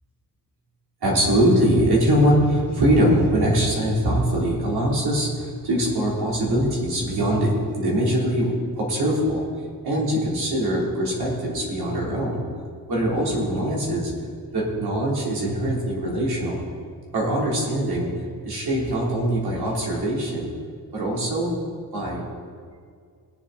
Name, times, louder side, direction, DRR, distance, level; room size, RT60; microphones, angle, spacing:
voice 1, 1.0-9.4 9.8-12.5 12.9-14.1 14.5-16.6 17.1-18.1 18.4-20.6 20.9-21.6 21.9-22.3, right 1 dB, 85° right, -4 dB, 3.6 m, -22 dB
21.0 x 7.3 x 4.1 m, 2.1 s
cardioid pair, 65°, 37 cm